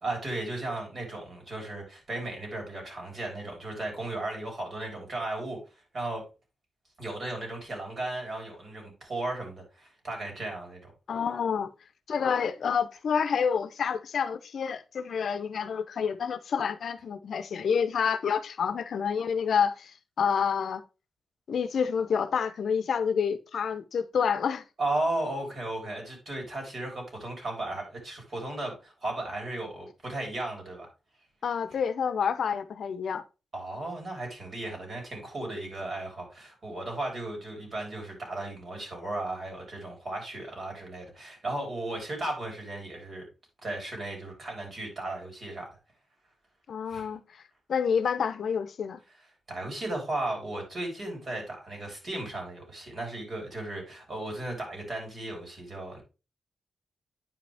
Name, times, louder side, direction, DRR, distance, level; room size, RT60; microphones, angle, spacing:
voice 1, 0.0-5.6 5.9-6.2 7.0-10.9 24.8-30.9 33.5-43.2 43.6-45.8 46.9-47.1 49.5-56.0, right 2 dB, 45° right, 4.0 m, -35 dB
voice 2, 11.1-11.7 12.1-20.8 21.5-24.6 31.4-33.2 46.7-47.4 47.7-49.0, left 6 dB, 70° left, 0.6 m, -28 dB
9.4 x 5.1 x 3.4 m
wide cardioid pair, 135°, 0 cm